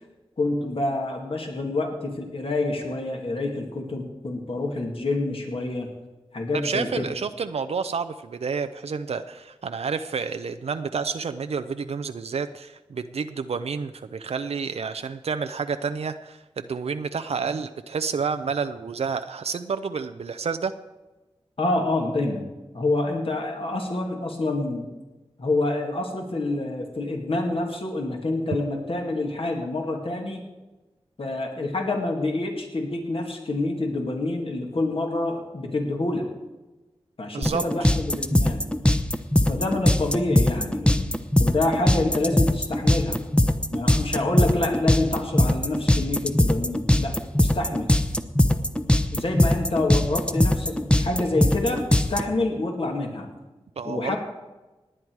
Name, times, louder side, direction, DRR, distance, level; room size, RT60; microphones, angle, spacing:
voice 1, 0.4-5.9 6.3-7.0 21.6-22.5 22.7-24.9 25.4-30.4 31.2-36.3 37.2-38.7 39.5-43.2 43.7-47.9 49.1-53.3 53.8-54.2, left 2 dB, 60° left, 2 dB, 2.3 m, -27 dB
voice 2, 6.5-20.7 37.3-37.9 53.8-54.2, right 5 dB, 80° right, 9 dB, 0.5 m, -30 dB
sound 1, 37.4-52.2, left 1 dB, 10° left, 0.9 m, -20 dB
19.0 x 8.9 x 4.7 m, 1.1 s
cardioid pair, 45°, 11 cm